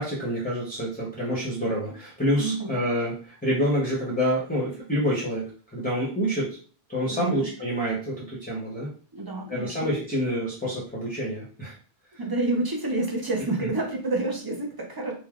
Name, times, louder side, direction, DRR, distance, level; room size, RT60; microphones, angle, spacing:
voice 1, 0.0-5.5 5.7-6.6 6.9-8.9 9.5-11.7 13.6-13.7, equal, 10° left, -5 dB, 0.7 m, -27 dB
voice 2, 2.4-2.8 7.1-7.5 9.1-9.8 12.2-15.1, right 2 dB, 40° right, 0 dB, 0.3 m, -28 dB
3.2 x 2.2 x 2.3 m, 0.40 s
omnidirectional pair, 1.0 m